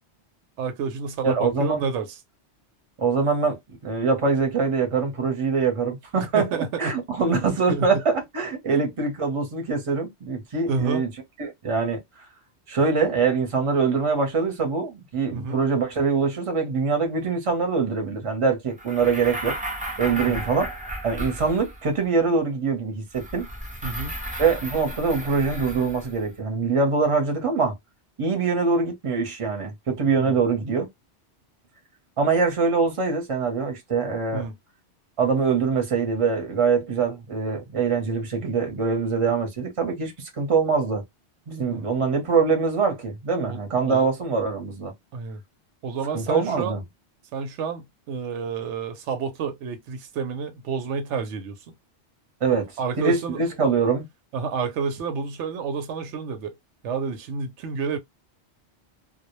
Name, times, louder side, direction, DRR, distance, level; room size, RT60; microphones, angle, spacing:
voice 1, 0.6-2.2 6.1-7.0 7.3-7.9 8.7-8.8 10.7-11.0 15.3-15.6 20.1-20.5 23.8-24.1 30.1-30.3 34.3-34.6 41.7-41.9 43.5-44.1 45.1-45.4 45.8-46.8 47.3-51.7 52.5-53.7 54.3-56.6 56.8-58.0, right 5 dB, 85° right, 0.9 m, -30 dB
voice 2, 1.2-1.8 3.0-11.1 11.4-12.0 12.7-19.5 20.0-20.7 21.0-23.5 24.4-27.7 28.2-30.9 32.2-34.5 35.2-41.0 41.5-44.9 46.1-46.8 52.4-52.6 53.0-54.0, right 4 dB, 30° right, 0.7 m, -23 dB
sound 1, 18.8-22.0 23.1-26.3, right 1 dB, 15° right, 0.3 m, -34 dB
2.2 x 2.1 x 2.9 m
omnidirectional pair, 1.2 m